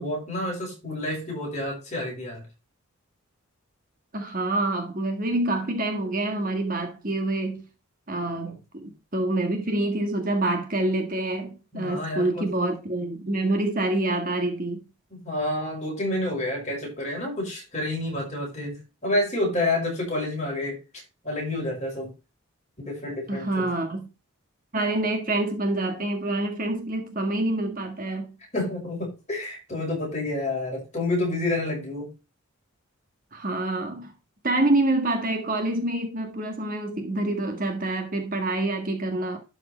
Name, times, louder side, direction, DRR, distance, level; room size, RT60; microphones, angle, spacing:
voice 1, 0.0-2.4 8.5-8.6 11.7-12.5 15.1-20.8 21.2-22.1 22.8-23.7 28.5-32.1, left 1 dB, 30° left, 5.7 m, -29 dB
voice 2, 4.1-7.6 8.1-14.8 23.3-24.1 24.7-28.3 33.3-34.1 34.4-39.4, right 2 dB, 40° right, 1.7 m, -26 dB
12.0 x 4.9 x 4.4 m
head